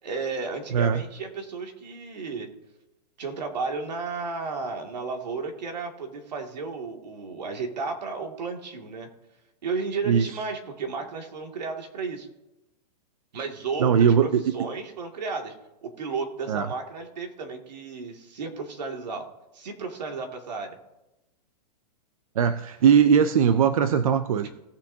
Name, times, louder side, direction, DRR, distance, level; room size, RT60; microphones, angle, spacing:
voice 1, 0.0-2.5 3.2-9.1 9.6-12.3 13.3-15.5 15.8-19.3 19.5-20.8, right 4 dB, 80° right, 3 dB, 2.4 m, -33 dB
voice 2, 0.7-1.0 10.1-10.4 13.8-14.7 16.5-16.7 22.4-24.5, right 7 dB, 55° right, 11 dB, 0.6 m, -20 dB
19.0 x 7.0 x 2.8 m, 0.94 s
hypercardioid pair, 175°, 21 cm